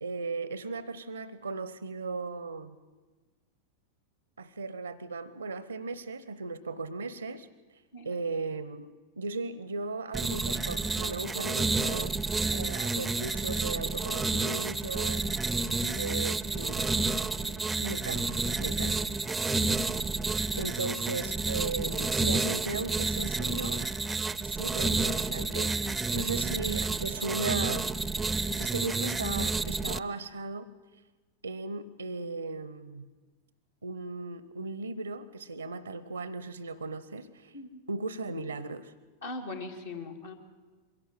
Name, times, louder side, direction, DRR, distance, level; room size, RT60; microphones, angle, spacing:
voice 1, 0.0-2.8 4.4-7.5 8.0-8.9 9.2-12.1 12.5-15.2 15.8-16.9 17.4-19.1 20.6-23.9 24.4-27.9 28.6-30.7 31.4-33.1 33.8-37.5 37.9-38.9, right 3 dB, 80° right, 16 dB, 0.7 m, -37 dB
sound 1, 10.1-30.0, right 3 dB, 10° right, 0.6 m, -30 dB
voice 2, 15.7-16.1 18.8-19.3 20.5-20.7 37.5-37.8 39.2-40.3, left 3 dB, 65° left, 2 dB, 2.2 m, -42 dB
22.5 x 17.0 x 7.5 m, 1.3 s
figure-of-eight pair, 90°, 0 cm